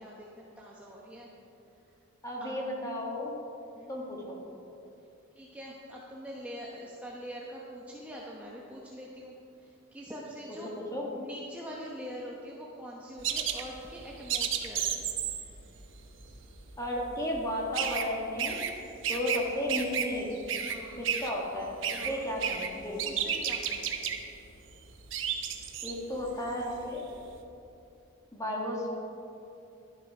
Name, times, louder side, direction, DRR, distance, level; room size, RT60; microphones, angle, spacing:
voice 1, 0.0-1.3 1.8-1.9 2.4-2.6 3.7-3.9 5.3-10.7 11.1-15.1 20.6-21.0 21.9-22.2 23.0-24.1, equal, 5° right, -4 dB, 0.9 m, -44 dB
voice 2, 2.2-3.3 3.9-4.4 10.9-11.1 16.8-18.7 19.0-20.3 21.0-21.8 22.1-23.0 25.8-27.0 28.3-28.9, left 1 dB, 15° left, -2 dB, 1.9 m, -33 dB
sound 1, 13.2-19.4 19.7-27.0, right 8 dB, 65° right, 0.9 m, -33 dB
12.0 x 10.5 x 4.9 m, 2.8 s
head